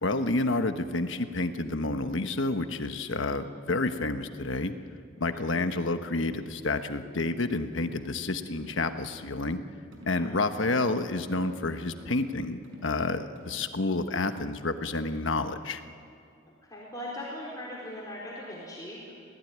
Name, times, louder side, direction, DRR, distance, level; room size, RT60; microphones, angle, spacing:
voice 1, 0.0-4.7 5.2-9.6 10.1-15.8, left 2 dB, 70° left, 8 dB, 1.3 m, -29 dB
voice 2, 5.3-5.7 10.2-10.4 16.7-19.1, left 1 dB, 20° left, -5 dB, 4.3 m, -40 dB
sound 1, 7.9-8.2 8.5-8.9 9.2-9.5 9.9-10.3 10.5-10.9 11.2-11.6 11.9-12.2 12.6-13.0 13.4-13.7 14.1-14.5, right 1 dB, 80° right, 5.6 m, -49 dB
26.0 x 18.0 x 9.6 m, 2.3 s
head